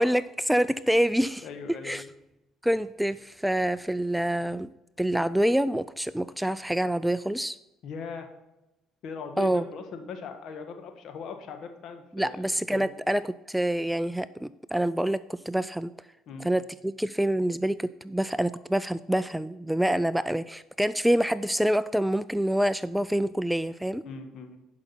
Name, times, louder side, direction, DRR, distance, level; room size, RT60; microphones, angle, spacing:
voice 1, 0.0-1.5 1.8-2.0 2.6-4.7 5.0-7.6 9.4-9.6 12.1-15.9 16.4-24.0, right 1 dB, 5° right, 16 dB, 0.3 m, -26 dB
voice 2, 1.4-2.1 7.8-8.3 9.0-12.4 12.7-12.9 16.3-16.5 24.0-24.6, left 5 dB, 60° left, 6 dB, 1.3 m, -39 dB
10.5 x 5.8 x 4.1 m, 0.96 s
hypercardioid pair, 65°, 0 cm